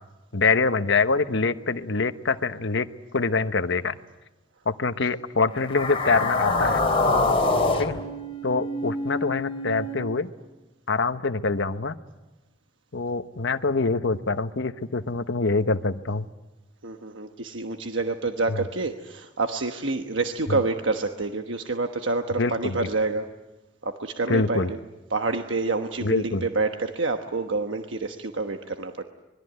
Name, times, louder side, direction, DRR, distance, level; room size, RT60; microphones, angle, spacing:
voice 1, 0.3-2.9 3.1-4.0 4.7-6.8 7.8-8.0 8.4-10.3 10.9-12.0 12.9-16.3 18.5-18.6 20.5-20.6 22.4-22.9 24.3-24.7 26.0-26.4, left 4 dB, 65° left, 11 dB, 1.1 m, -25 dB
sound 1, 5.6-10.0, left 2 dB, 30° left, 3.3 m, -25 dB
voice 2, 16.8-23.3 23.8-24.8 25.1-29.0, right 3 dB, 70° right, 5 dB, 1.2 m, -28 dB
25.0 x 21.5 x 9.4 m, 1.1 s
head